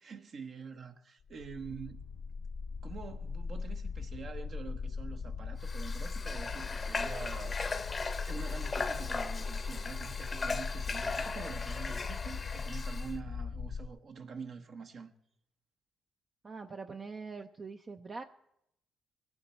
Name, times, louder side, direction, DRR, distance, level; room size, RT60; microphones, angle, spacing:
voice 1, 0.0-2.0 2.8-7.6 8.3-15.1, right 5 dB, 55° right, 1.0 m, -46 dB
sound 1, 1.3-13.9, left 5 dB, 65° left, 0.5 m, -39 dB
Water / Water tap faucet, 5.6-13.1, left 4 dB, 35° left, 0.8 m, -38 dB
voice 2, 16.4-18.2, right 4 dB, 35° right, 0.6 m, -43 dB
21.0 x 8.8 x 4.3 m
cardioid pair, 90°, 0 cm